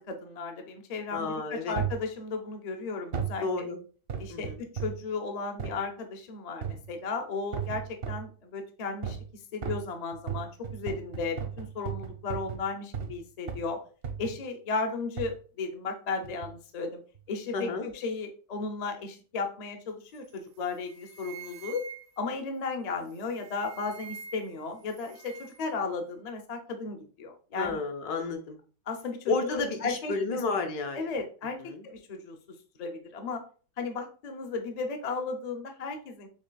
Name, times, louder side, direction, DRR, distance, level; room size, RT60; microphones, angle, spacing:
voice 1, 0.0-3.7 4.2-4.5 4.7-9.2 9.5-13.8 14.2-17.0 17.3-21.9 22.2-27.8 28.9-30.4 30.9-31.6 31.8-32.4 32.8-33.4 33.8-36.3, left 4 dB, 55° left, 4 dB, 0.4 m, -35 dB
voice 2, 1.1-1.8 3.4-3.8 4.3-4.6 17.5-17.9 27.5-28.6 29.3-31.0 31.6-31.9, left 4 dB, 70° left, 5 dB, 1.4 m, -31 dB
sound 1, 1.8-2.1 3.1-3.4 4.1-5.1 5.6-5.8 6.6-7.0 7.5-8.3 9.0-9.3 9.6-13.2 13.5-13.7 14.0-14.4 15.2-15.4 16.2-16.6 17.1-17.2, right 7 dB, 65° right, 0.6 m, -35 dB
sound 2, 20.2-20.4 20.7-22.3 23.1-24.6 24.9-25.7, right 7 dB, 85° right, 1.2 m, -46 dB
6.4 x 3.3 x 2.2 m, 0.39 s
omnidirectional pair, 1.7 m